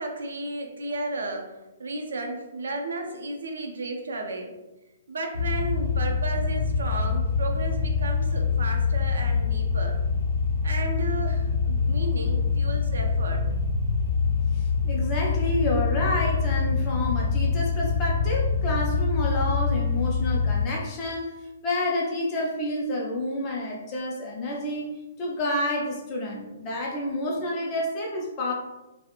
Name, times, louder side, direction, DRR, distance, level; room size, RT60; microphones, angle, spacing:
voice 1, 0.0-1.5 1.8-4.5 5.1-10.0 10.6-13.4, right 2 dB, 80° right, 2 dB, 0.5 m, -33 dB
sound 1, 5.3-20.7, left 5 dB, 75° left, 0.5 m, -25 dB
voice 2, 14.5-21.3 21.6-24.9 25.2-28.5, left 1 dB, 20° left, -2 dB, 0.4 m, -29 dB
2.4 x 2.0 x 2.9 m, 1.0 s
hypercardioid pair, 175°, 0 cm